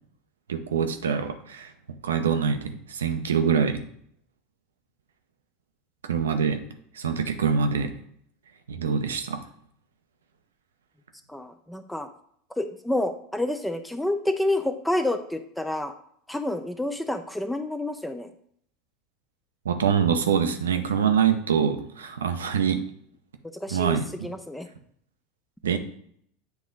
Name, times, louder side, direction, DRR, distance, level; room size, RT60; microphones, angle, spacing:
voice 1, 0.5-1.7 2.0-3.9 6.0-6.6 6.9-7.9 8.7-9.4 19.6-22.8 23.7-24.3 25.6-25.8, right 7 dB, 90° right, 7 dB, 0.7 m, -24 dB
voice 2, 11.3-12.1 12.6-15.9 16.3-18.3 23.6-24.0 24.2-24.7, left 1 dB, 5° left, 7 dB, 0.5 m, -28 dB
8.0 x 3.0 x 3.9 m, 0.67 s
hypercardioid pair, 90°, 0 cm